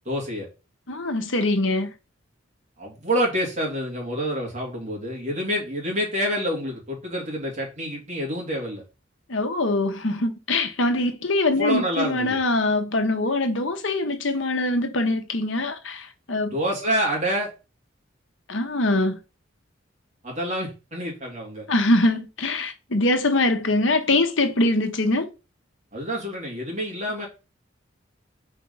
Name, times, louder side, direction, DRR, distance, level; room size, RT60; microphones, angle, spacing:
voice 1, 0.0-0.5 2.8-8.8 11.6-12.4 16.5-17.5 20.2-21.7 25.9-27.3, equal, 35° right, 2.8 m, -27 dB
voice 2, 0.9-1.9 9.3-16.5 18.5-19.2 21.7-25.3, left 2 dB, 70° left, 1.1 m, -23 dB
4.9 x 4.6 x 5.5 m
head